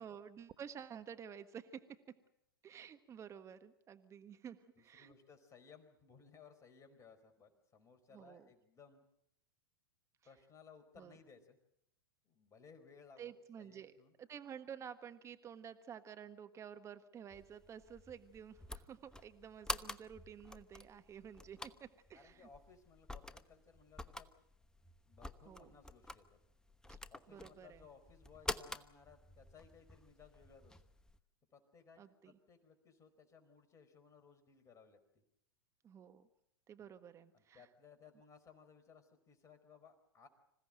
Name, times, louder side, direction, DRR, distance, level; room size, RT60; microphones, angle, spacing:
voice 1, 0.0-1.8 2.6-5.1 8.1-8.5 11.0-11.1 13.2-13.9 14.2-22.5 25.5-25.7 27.3-27.8 32.0-32.3 35.8-36.3 36.7-37.7, right 8 dB, 25° right, 9 dB, 1.5 m, -51 dB
voice 2, 4.7-9.0 10.2-11.6 12.2-14.1 22.1-24.3 25.1-26.3 27.1-30.8 31.5-35.0 36.8-36.9 37.3-40.3, left 6 dB, 25° left, 8 dB, 4.7 m, -62 dB
sound 1, 17.3-31.2, left 2 dB, 5° left, 1.0 m, -49 dB
26.5 x 16.5 x 9.0 m, 0.77 s
figure-of-eight pair, 100°, 12 cm